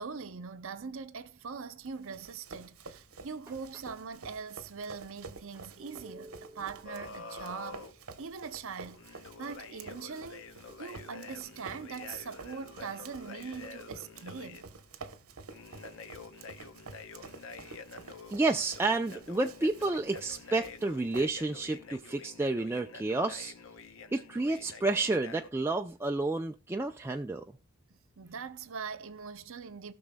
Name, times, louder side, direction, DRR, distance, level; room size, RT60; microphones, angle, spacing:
voice 1, 0.0-10.4 10.8-14.7 27.9-29.9, right 5 dB, 65° right, 0.7 m, -42 dB
Run, 1.8-21.7, right 4 dB, 85° right, 1.0 m, -50 dB
sound 1, 6.8-7.9 8.9-14.6 15.5-25.5, left 5 dB, 65° left, 0.8 m, -48 dB
voice 2, 18.3-23.5 24.1-27.4, right 2 dB, 10° right, 0.3 m, -30 dB
18.5 x 6.2 x 2.2 m
head